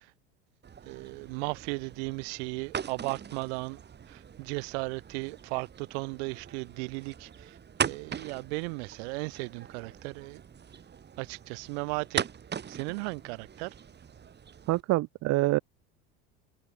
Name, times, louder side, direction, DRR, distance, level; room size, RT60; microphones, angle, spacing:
sound 1, 0.6-14.8, right 7 dB, 30° right, 5.0 m, -40 dB
voice 1, 0.8-3.8 4.1-10.4 11.2-12.3 12.7-13.7, right 31 dB, 75° right, 1.6 m, -36 dB
voice 2, 14.7-15.6, right 19 dB, 50° right, 0.9 m, -26 dB
supercardioid pair, 105°, 33 cm